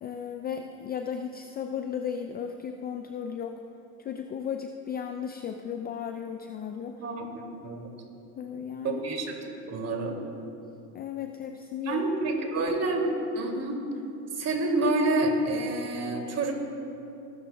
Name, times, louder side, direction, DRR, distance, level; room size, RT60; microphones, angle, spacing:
voice 1, 0.0-3.6 4.0-7.0 8.4-9.1 10.6-12.0, left 8 dB, 20° left, 6 dB, 0.4 m, -35 dB
voice 2, 7.0-7.9 8.8-9.3 9.7-10.2 11.9-13.1 13.3-13.8 14.4-16.5, right 2 dB, 35° right, 1 dB, 2.6 m, -28 dB
20.5 x 12.5 x 2.3 m, 2.7 s
hypercardioid pair, 95°, 47 cm